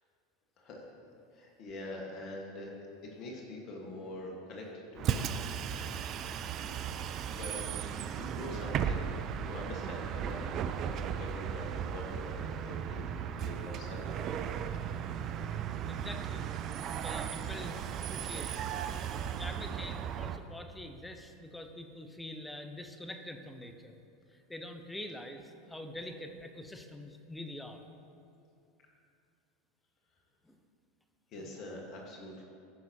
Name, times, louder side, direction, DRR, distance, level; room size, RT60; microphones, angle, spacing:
voice 1, 0.6-1.1 1.3-2.8 3.2-5.4 7.3-7.9 8.2-9.1 9.4-14.2 31.3-32.4, left 1 dB, 45° left, -1 dB, 1.6 m, -44 dB
Bus, 5.0-20.4, right 8 dB, 45° right, 0.4 m, -36 dB
voice 2, 15.9-16.5 17.0-18.7 19.4-24.0 24.5-27.8 30.4-30.6, left 1 dB, 10° left, 6 dB, 0.8 m, -45 dB
15.0 x 5.9 x 2.9 m, 2.5 s
hypercardioid pair, 85°, 0 cm